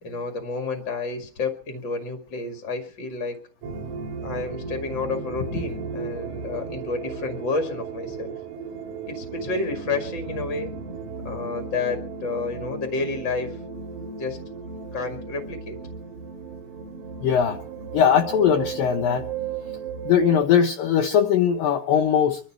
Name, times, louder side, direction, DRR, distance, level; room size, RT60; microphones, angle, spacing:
voice 1, 0.0-3.4 4.2-8.3 9.1-10.7 11.2-13.6 14.2-14.4 14.9-15.8, left 3 dB, 50° left, 5 dB, 1.3 m, -30 dB
sound 1, 3.6-20.4, right 5 dB, 60° right, 2.3 m, -35 dB
voice 2, 17.2-17.6 17.9-19.3 20.1-22.4, left 8 dB, 80° left, 5 dB, 2.0 m, -20 dB
24.5 x 12.0 x 4.5 m, 0.41 s
omnidirectional pair, 5.3 m